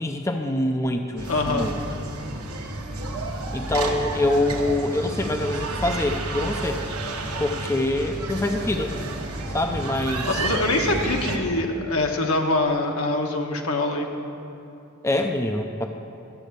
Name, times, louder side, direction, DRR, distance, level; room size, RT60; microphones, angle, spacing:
voice 1, 0.0-1.7 3.5-6.8 7.4-8.9 9.5-10.5 15.0-15.9, left 1 dB, 15° left, 4 dB, 0.5 m, -25 dB
sound 1, 1.2-11.4, right 2 dB, 85° right, 1.2 m, -30 dB
voice 2, 1.3-1.7 10.2-14.1, left 2 dB, 70° left, 2 dB, 1.2 m, -24 dB
11.5 x 8.3 x 6.6 m, 2.7 s
head